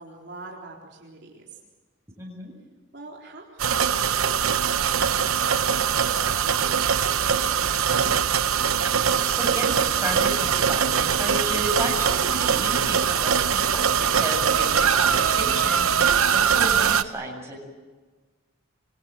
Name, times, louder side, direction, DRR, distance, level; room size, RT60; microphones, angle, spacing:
voice 1, 0.0-1.6 2.9-8.3, right 2 dB, 55° right, -2 dB, 4.0 m, -44 dB
voice 2, 2.2-2.5 9.2-17.6, right 1 dB, 15° right, -1 dB, 7.5 m, -33 dB
sound 1, 3.6-17.0, right 7 dB, 85° right, 1.0 m, -22 dB
26.5 x 24.5 x 7.8 m, 1.3 s
head